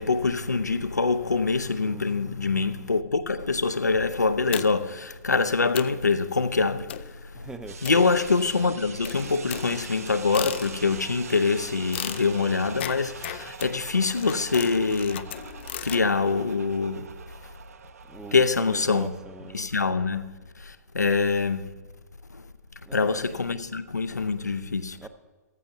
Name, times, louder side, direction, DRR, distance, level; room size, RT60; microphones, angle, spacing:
voice 1, 0.0-6.9 7.4-7.5 7.8-15.2 15.8-17.1 18.3-19.1 19.5-21.7 22.3-22.4 22.9-25.0, left 4 dB, 75° left, 0.7 m, -25 dB
sound 1, 4.5-5.0 5.4-5.5 5.7-6.1 6.9-7.2 7.8-8.6 9.0-11.1 11.9-16.1, left 12 dB, 40° left, 0.4 m, -37 dB
voice 2, 7.3-7.8 18.1-19.6 22.9-23.3 25.0-25.1, right 3 dB, 5° right, 0.6 m, -41 dB
sound 2, 7.7-19.7, right 6 dB, 60° right, 1.0 m, -43 dB
15.0 x 15.0 x 2.7 m
figure-of-eight pair, 115°, 9 cm